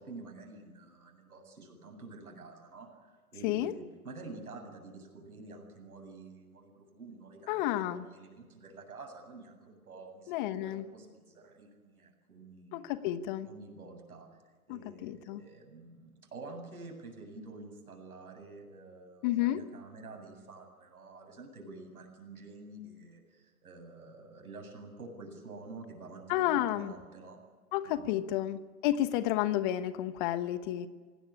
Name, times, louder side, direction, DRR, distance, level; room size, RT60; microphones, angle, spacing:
voice 1, 0.0-12.8 13.4-14.3 14.7-27.4 27.8-28.4, right 3 dB, 70° right, 4 dB, 7.9 m, -49 dB
voice 2, 3.4-3.7 7.5-8.0 10.3-10.8 12.7-13.5 14.7-15.4 19.2-19.6 26.3-26.9 27.7-30.9, left 13 dB, 35° left, 13 dB, 1.1 m, -31 dB
26.5 x 18.0 x 9.9 m, 1.4 s
figure-of-eight pair, 115°, 45 cm